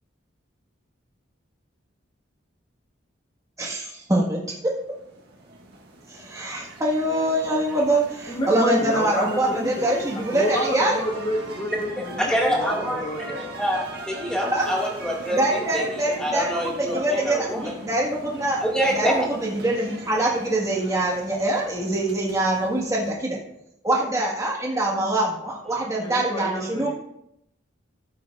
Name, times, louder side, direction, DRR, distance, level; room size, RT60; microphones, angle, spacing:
voice 1, 3.6-4.7 6.1-11.0 14.5-14.6 15.3-18.6 18.9-23.4 23.8-26.9, right 1 dB, 15° right, -3 dB, 1.7 m, -24 dB
sound 1, 4.2-23.1, right 2 dB, 55° right, 1.7 m, -40 dB
voice 2, 8.3-13.4 26.0-26.9, equal, 20° left, 0 dB, 1.3 m, -29 dB
voice 3, 12.0-13.0 13.3-17.7 18.6-19.3 25.7-25.8, equal, 5° left, -3 dB, 2.0 m, -26 dB
14.5 x 7.8 x 2.5 m, 0.80 s
head